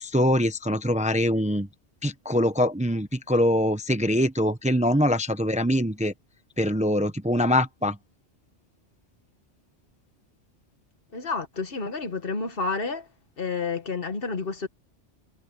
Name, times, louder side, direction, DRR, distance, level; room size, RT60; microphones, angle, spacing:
voice 1, 0.0-1.7 2.0-6.1 6.6-8.0, equal, 5° right, 0.7 m, -23 dB
voice 2, 11.1-13.1 13.4-14.7, left 4 dB, 55° left, 1.6 m, -30 dB
omnidirectional pair, 1.1 m